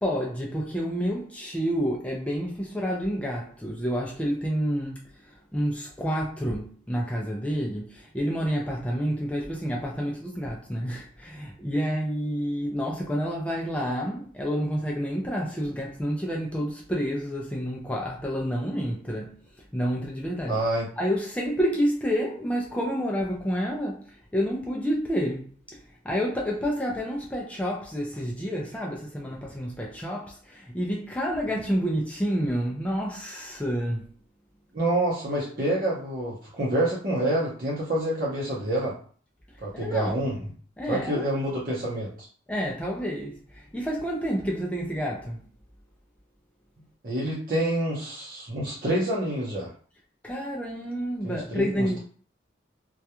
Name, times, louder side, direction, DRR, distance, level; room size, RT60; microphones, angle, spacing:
voice 1, 0.0-20.6 21.0-34.1 39.7-40.2 40.8-41.3 42.5-45.5 50.2-52.0, equal, 5° left, 0.3 m, -29 dB
voice 2, 20.5-20.9 34.7-38.9 39.6-40.4 40.9-42.3 47.0-49.7 51.2-52.0, right 1 dB, 50° right, 0.7 m, -27 dB
2.3 x 2.1 x 2.8 m
head